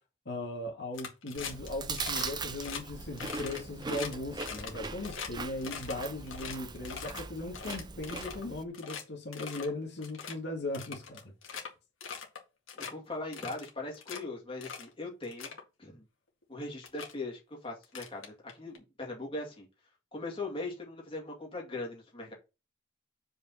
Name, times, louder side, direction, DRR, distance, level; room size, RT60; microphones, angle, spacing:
voice 1, 0.3-11.2 11.5-11.6, left 2 dB, 60° left, 2.0 m, -38 dB
sound 1, 0.9-1.7 1.9-2.3 2.6-2.8 3.2-5.3 5.6-7.2 7.5-8.4 8.7-9.0 9.3-9.7 10.0-10.3 10.7-11.7 12.0-12.4 12.7-12.9 13.3-14.2 14.6-14.9 15.2-15.6 16.4-16.5 16.8-17.1 17.8-18.8, left 6 dB, 85° left, 2.1 m, -41 dB
Chewing mastication, 1.3-8.6, right 4 dB, 20° right, 0.5 m, -40 dB
voice 2, 12.8-15.5 15.8-16.0 16.5-19.7 20.1-22.3, left 2 dB, 25° left, 2.4 m, -40 dB
5.2 x 5.1 x 5.6 m
head